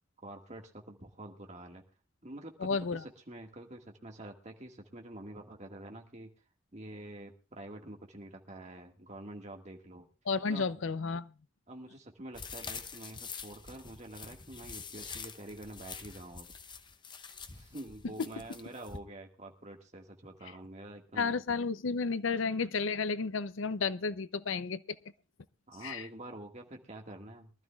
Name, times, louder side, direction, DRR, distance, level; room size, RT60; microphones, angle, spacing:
voice 1, 0.2-1.8 2.2-6.3 6.7-10.1 10.4-10.7 11.7-16.6 17.5-21.4 25.7-27.5, right 1 dB, 35° right, 1.8 m, -47 dB
voice 2, 2.6-3.0 10.3-11.3 21.2-25.0 25.8-26.1, left 4 dB, 70° left, 0.6 m, -32 dB
sound 1, 12.3-19.0, left 5 dB, 25° left, 0.7 m, -46 dB
23.5 x 12.5 x 2.4 m
head